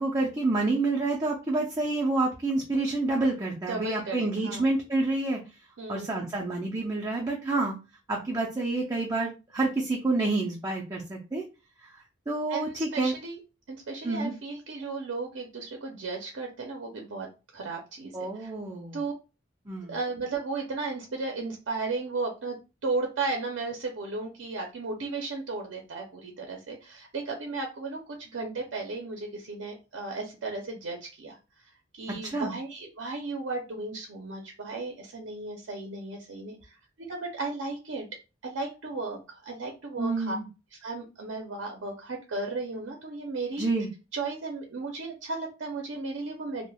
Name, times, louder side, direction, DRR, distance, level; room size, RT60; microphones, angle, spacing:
voice 1, 0.0-5.4 5.9-7.7 8.1-11.4 11.8-13.1 14.0-14.3 18.1-19.0 19.7-19.9 32.1-32.5 40.0-40.5 43.6-43.9, right 2 dB, 20° right, -2 dB, 0.4 m, -28 dB
voice 2, 3.7-4.6 5.8-6.2 12.5-13.4 13.7-17.3 17.5-18.5 18.9-19.1 19.9-22.6 22.8-31.4 31.9-38.0 38.4-40.4 40.8-43.7 44.1-46.7, right 3 dB, 70° right, 2 dB, 0.5 m, -35 dB
3.2 x 2.0 x 2.2 m, 0.30 s
head